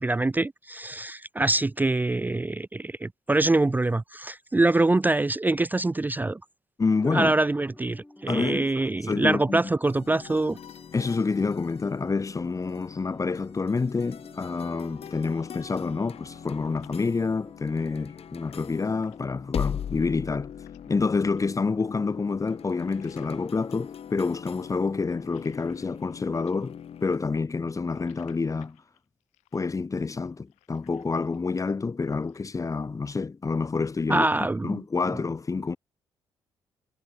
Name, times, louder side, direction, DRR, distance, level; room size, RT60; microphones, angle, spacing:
voice 1, 0.0-6.4 7.1-10.6 34.1-34.8, right 2 dB, 15° right, 0.5 m, -24 dB
voice 2, 6.8-7.3 8.3-8.7 9.0-9.6 10.9-20.5 20.9-28.8 29.5-34.3 34.6-35.8, left 4 dB, 30° left, 0.8 m, -28 dB
sound 1, 6.9-19.1, left 1 dB, 10° left, 6.8 m, -52 dB
sound 2, 9.8-27.2, left 8 dB, 60° left, 4.6 m, -40 dB
sound 3, 14.6-15.8 16.1-20.9 21.3-26.2 26.4-31.6 31.9-32.6, left 20 dB, 80° left, 7.6 m, -62 dB
hypercardioid pair, 45°, 12 cm